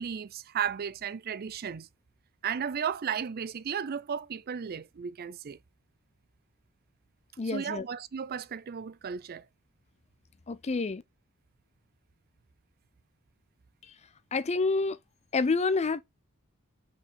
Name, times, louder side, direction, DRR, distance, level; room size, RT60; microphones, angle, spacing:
voice 1, 0.0-1.9 2.4-5.6 7.4-9.5, right 7 dB, 45° right, 0.4 m, -34 dB
voice 2, 7.4-7.8 10.5-11.0 13.8-13.9 14.3-15.0 15.3-16.0, left 3 dB, 30° left, 0.5 m, -28 dB
5.5 x 4.7 x 4.2 m
head